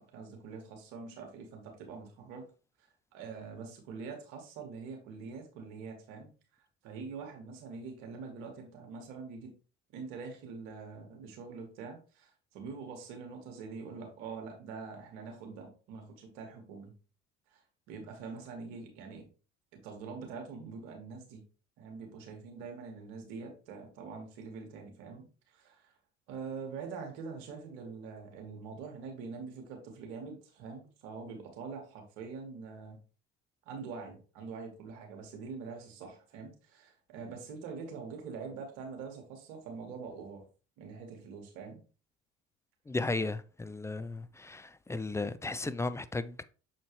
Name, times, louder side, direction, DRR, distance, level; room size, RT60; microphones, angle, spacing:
voice 1, 0.0-2.5 3.1-6.3 6.8-9.5 9.9-16.9 17.5-17.6 17.9-19.3 19.8-21.4 21.8-25.9 26.3-33.0 33.7-40.4 40.8-41.8, right 5 dB, 70° right, 2.2 m, -44 dB
voice 2, 42.9-46.4, left 3 dB, 10° left, 0.3 m, -35 dB
7.1 x 4.3 x 3.1 m
hypercardioid pair, 70°, 36 cm